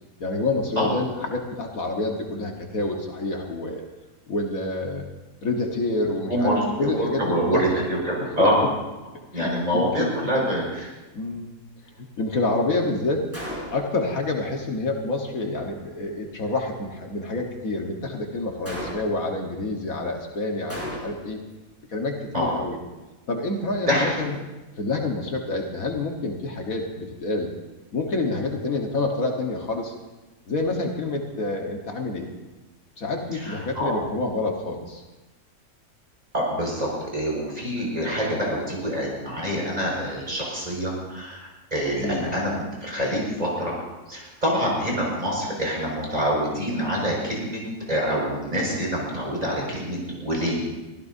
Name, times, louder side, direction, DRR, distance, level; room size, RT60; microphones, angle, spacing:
voice 1, 0.2-3.9 4.3-5.1 5.4-7.8 8.4-8.5 9.3-10.1 11.1-11.6 12.0-13.3 13.7-21.4 21.9-22.8 23.3-24.4 24.8-27.5 27.9-29.9 30.5-32.3 33.0-35.0 42.0-42.3, left 2 dB, 65° left, 1 dB, 1.8 m, -28 dB
voice 2, 6.3-8.6 9.3-10.9 22.3-22.5 23.8-24.1 33.4-33.9 36.3-43.7 44.1-47.6 47.9-50.6, equal, 25° right, -3 dB, 5.5 m, -26 dB
Gunshot gunfire, 13.3-14.0 18.6-19.3 20.7-21.4, equal, 10° right, 4.5 m, -35 dB
24.0 x 15.5 x 2.7 m, 1.1 s
omnidirectional pair, 1.6 m